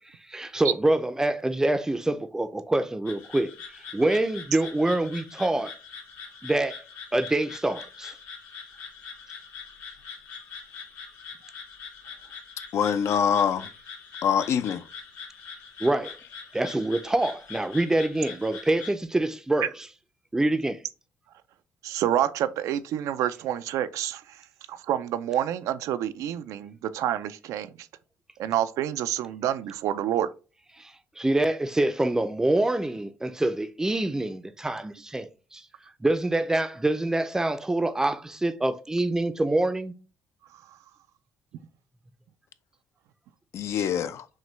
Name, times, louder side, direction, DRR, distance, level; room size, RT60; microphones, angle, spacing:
voice 1, 0.3-5.7 6.4-6.8 7.1-8.2 15.8-16.2 16.5-19.9 20.3-20.8 30.8-35.7 36.0-39.9, right 2 dB, 10° right, 0.4 m, -26 dB
sound 1, 3.1-18.9, left 6 dB, 85° left, 1.9 m, -43 dB
voice 2, 12.7-13.7 14.2-14.8 43.5-44.3, left 8 dB, 55° left, 0.4 m, -24 dB
voice 3, 21.8-24.4 24.7-27.9 28.4-30.3, right 11 dB, 75° right, 0.4 m, -28 dB
6.2 x 2.2 x 3.2 m
cardioid pair, 110°, 5 cm